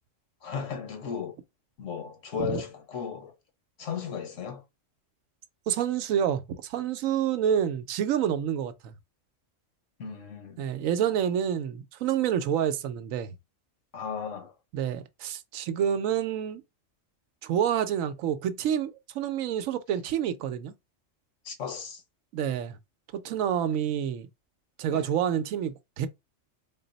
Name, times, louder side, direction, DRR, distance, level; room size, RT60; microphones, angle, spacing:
voice 1, 0.4-1.4 1.8-3.3 3.8-4.6 10.0-10.6 13.9-14.5 21.4-22.0 24.9-25.1, left 7 dB, 70° left, 1.3 m, -35 dB
voice 2, 5.7-8.9 10.6-13.3 14.7-16.6 17.4-20.7 22.3-22.8 23.2-24.3 24.8-26.1, right 9 dB, 85° right, 1.0 m, -28 dB
3.9 x 2.0 x 3.9 m
omnidirectional pair, 1.3 m